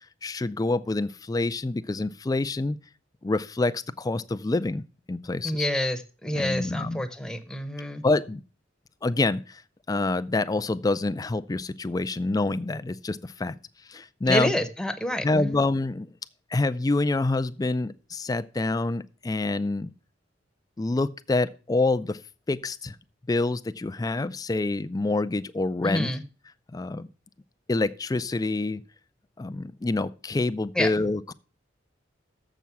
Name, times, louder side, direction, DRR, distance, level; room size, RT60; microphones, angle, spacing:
voice 1, 0.2-2.8 3.2-4.8 5.1-5.7 6.3-7.0 8.0-8.4 9.0-9.6 9.9-13.6 13.9-14.5 15.2-16.1 16.5-19.9 20.8-22.2 22.5-23.0 23.3-26.1 26.7-27.1 27.7-28.8 29.4-31.3, left 2 dB, 20° left, 0.4 m, -27 dB
voice 2, 5.4-8.0 14.3-15.6 25.8-26.2 30.8-30.9, left 1 dB, 5° left, 0.8 m, -28 dB
7.4 x 6.0 x 6.9 m
head